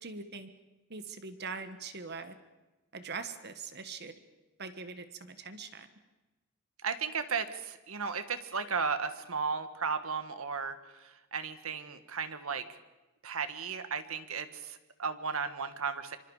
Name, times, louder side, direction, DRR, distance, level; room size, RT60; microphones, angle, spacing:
voice 1, 0.0-0.5 0.9-2.3 2.9-4.1 4.6-5.9, right 4 dB, 50° right, 9 dB, 1.5 m, -42 dB
voice 2, 6.8-12.6 13.2-16.2, right 5 dB, 75° right, 10 dB, 1.7 m, -35 dB
26.5 x 25.5 x 5.0 m, 1.1 s
head